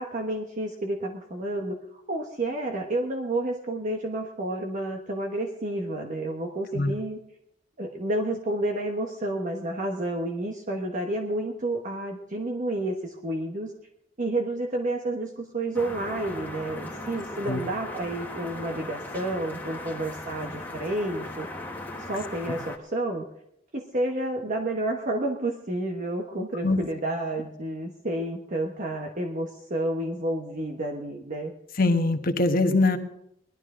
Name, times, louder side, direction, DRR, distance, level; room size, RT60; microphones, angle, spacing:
voice 1, 0.0-7.2 7.8-13.7 14.2-21.5 22.0-23.3 23.7-31.5, right 1 dB, 45° right, 2 dB, 1.1 m, -30 dB
sound 1, 15.7-22.8, left 1 dB, 10° left, 1.5 m, -38 dB
voice 2, 31.8-33.0, left 2 dB, 50° left, 6 dB, 1.2 m, -22 dB
19.0 x 12.5 x 3.7 m, 0.75 s
head